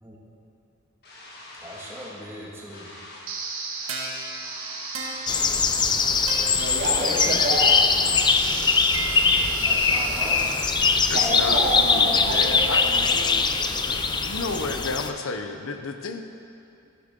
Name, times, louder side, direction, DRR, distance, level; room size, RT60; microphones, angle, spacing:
sound 1, 1.0-14.3, left 1 dB, 50° left, 2.0 m, -44 dB
voice 1, 1.5-2.9 9.6-10.7, equal, 10° right, -4 dB, 1.9 m, -39 dB
sound 2, 3.3-12.3, right 4 dB, 70° right, 1.6 m, -35 dB
sound 3, 5.3-15.1, left 5 dB, 20° left, 0.4 m, -22 dB
voice 2, 6.6-7.8 11.1-13.2, equal, 50° right, -3 dB, 2.2 m, -28 dB
voice 3, 11.1-12.8 13.9-16.2, left 3 dB, 70° left, 6 dB, 0.8 m, -32 dB
13.5 x 12.5 x 3.8 m, 2.5 s
head